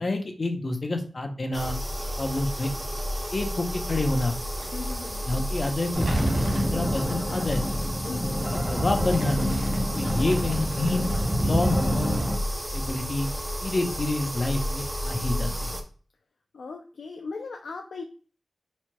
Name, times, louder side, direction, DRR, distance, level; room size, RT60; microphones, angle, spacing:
voice 1, 0.0-1.8 2.2-2.7 3.3-4.4 5.3-5.9 6.2-7.6 8.0-8.1 8.5-9.5 9.9-11.0 11.4-12.2 12.7-13.3 13.6-15.8, left 2 dB, 45° left, 4 dB, 0.7 m, -28 dB
sound 1, 1.5-15.8, equal, 20° right, 0.5 m, -32 dB
sound 2, 4.5-12.7, right 2 dB, 85° right, 0.7 m, -45 dB
voice 2, 4.7-5.2 8.1-8.4 10.3-10.6 16.5-18.0, left 4 dB, 80° left, 2 dB, 0.4 m, -38 dB
sound 3, 5.9-12.3, equal, 10° left, 1.9 m, -27 dB
4.3 x 3.0 x 2.2 m, 0.40 s
wide cardioid pair, 75°, 0 cm